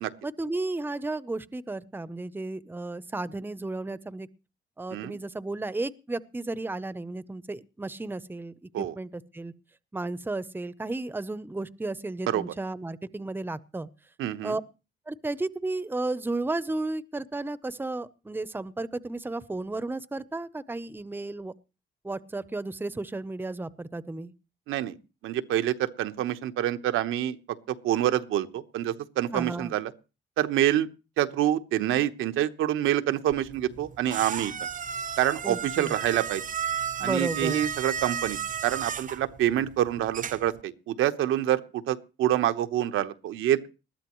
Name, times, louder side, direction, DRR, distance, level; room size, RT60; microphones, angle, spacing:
voice 1, 0.2-4.3 4.8-9.5 9.9-13.9 14.4-14.6 15.1-21.5 22.0-24.3 29.3-29.7 35.4-35.9 37.0-37.6, right 2 dB, 10° right, 17 dB, 0.8 m, -33 dB
voice 2, 14.2-14.6 24.7-24.9 25.2-27.4 27.8-29.9 30.4-30.9 31.2-34.5 35.2-36.4 37.0-43.7, right 12 dB, 85° right, 9 dB, 1.1 m, -27 dB
sound 1, 33.3-40.6, right 7 dB, 40° right, 0.7 m, -34 dB
20.5 x 13.0 x 3.1 m, 0.31 s
cardioid pair, 90°, 20 cm